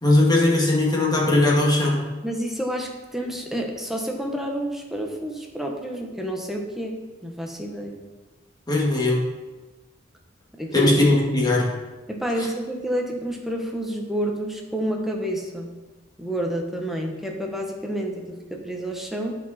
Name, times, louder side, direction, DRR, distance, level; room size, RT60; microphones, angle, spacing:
voice 1, 0.0-2.1 8.7-9.3 10.7-11.8 12.4-12.5, left 2 dB, 20° left, -3 dB, 1.8 m, -19 dB
voice 2, 2.2-6.9 7.2-8.0 10.6-10.9 12.1-15.7 16.2-19.3, right 1 dB, ahead, 0 dB, 1.0 m, -29 dB
10.0 x 4.9 x 4.2 m, 1.2 s
head